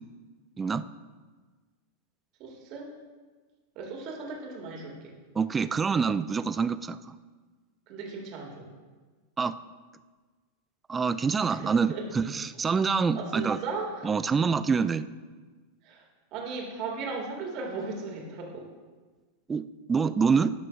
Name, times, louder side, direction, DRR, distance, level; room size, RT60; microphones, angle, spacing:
voice 1, 2.4-2.9 3.8-5.1 7.9-8.7 11.6-12.1 13.2-14.1 15.8-16.0 16.3-18.7, right 4 dB, 40° right, 0 dB, 2.0 m, -36 dB
voice 2, 5.4-7.0 9.4-9.5 10.9-13.6 14.0-15.1 19.5-19.6 19.9-20.5, right 5 dB, 15° right, 13 dB, 0.3 m, -26 dB
17.5 x 6.0 x 2.4 m, 1.4 s
figure-of-eight pair, 90°, 0 cm